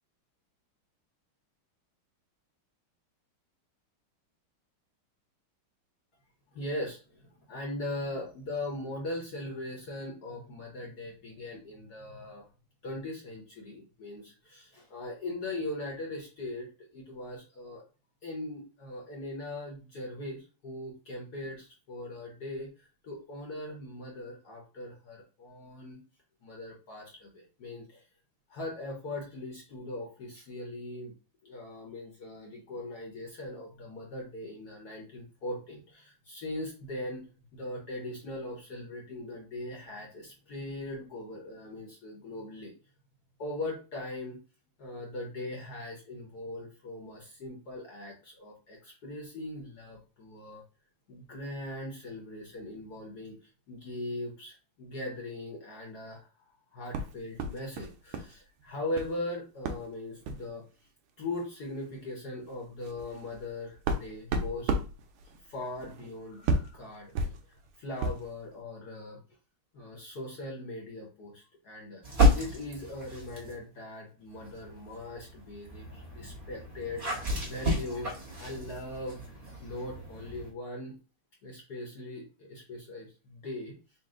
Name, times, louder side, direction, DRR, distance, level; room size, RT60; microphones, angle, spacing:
voice 1, 6.5-12.5 12.8-17.8 18.2-26.0 26.4-28.1 28.5-31.1 31.4-42.7 43.4-44.4 44.8-50.6 51.1-60.6 61.2-64.7 65.4-69.2 69.7-72.0 72.3-78.1 78.4-79.3 79.6-81.0 81.4-83.7, left 1 dB, 55° left, 0 dB, 1.3 m, -40 dB
sound 1, 56.9-58.3 58.6-59.2 59.6-59.9 60.2-60.5 61.4-61.5 61.8-62.0 62.5-68.3, right 2 dB, 75° right, 1.5 m, -34 dB
sound 2, 72.0-73.6 74.3-80.5, equal, 25° right, 1.3 m, -31 dB
4.2 x 2.5 x 3.7 m, 0.34 s
omnidirectional pair, 2.4 m